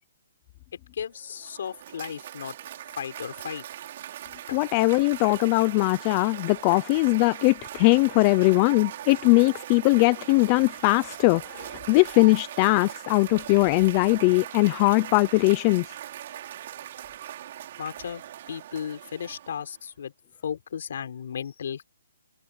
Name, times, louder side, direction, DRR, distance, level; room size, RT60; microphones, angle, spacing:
voice 1, 0.9-2.5 3.0-3.7 4.5-4.7 17.8-20.1 20.4-21.8, left 8 dB, 55° left, 4.5 m, -35 dB
Cheering / Applause, 1.2-19.8, right 12 dB, 35° right, 5.0 m, -40 dB
voice 2, 4.5-15.8, left 24 dB, 20° left, 0.6 m, -21 dB
hypercardioid pair, 170°, 0 cm